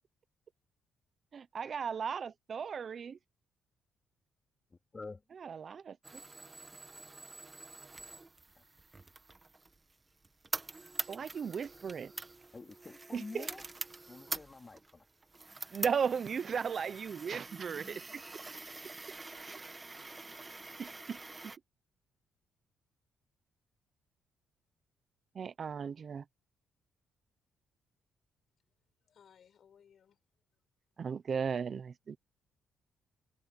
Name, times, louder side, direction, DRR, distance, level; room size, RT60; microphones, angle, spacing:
voice 1, 1.3-3.2 5.4-6.0 11.1-12.1 13.1-13.5 15.7-18.2 19.5-19.6 20.8-21.2 25.3-26.2 31.0-32.2, right 6 dB, 50° right, 0.9 m, -36 dB
voice 2, 4.7-5.2 8.6-8.7 12.5-13.6 14.1-15.1, left 3 dB, 25° left, 3.6 m, -48 dB
sound 1, 6.0-21.6, right 3 dB, 20° right, 1.7 m, -45 dB
voice 3, 28.6-30.2 30.5-30.6 30.9-31.3, left 8 dB, 60° left, 7.2 m, -65 dB
cardioid pair, 90°, 0 cm